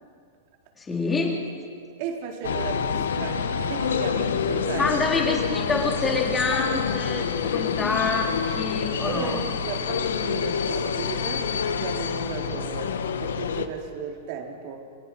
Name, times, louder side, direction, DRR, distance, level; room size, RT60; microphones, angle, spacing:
voice 1, 0.8-1.4 4.8-9.4, left 3 dB, 15° left, 0 dB, 3.8 m, -26 dB
voice 2, 2.0-4.9 9.0-14.8, right 6 dB, 50° right, 1 dB, 3.9 m, -35 dB
sound 1, 2.4-13.7, left 7 dB, 90° left, 1.4 m, -27 dB
29.5 x 24.0 x 6.3 m, 2.3 s
hypercardioid pair, 145°, 0 cm